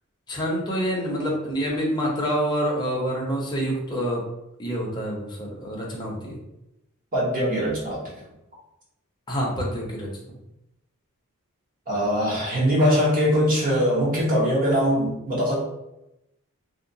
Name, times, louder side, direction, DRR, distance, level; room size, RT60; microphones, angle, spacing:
voice 1, 0.3-4.2 4.6-6.4 9.3-10.1, equal, 20° left, -3 dB, 0.6 m, -27 dB
voice 2, 7.1-8.0 11.9-15.6, equal, 40° right, -6 dB, 1.0 m, -22 dB
2.8 x 2.1 x 2.6 m, 0.88 s
head